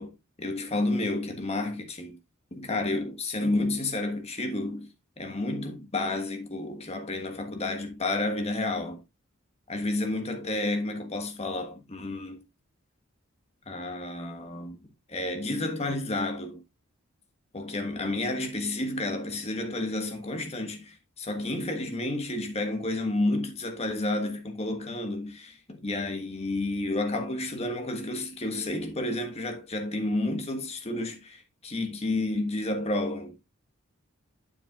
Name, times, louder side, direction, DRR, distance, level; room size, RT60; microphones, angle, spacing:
voice 1, 0.0-2.2 2.5-4.9 5.2-9.0 9.7-12.4 13.7-14.8 15.1-16.6 17.5-33.4, left 2 dB, 30° left, 1.4 m, -31 dB
8.9 x 7.1 x 2.4 m
head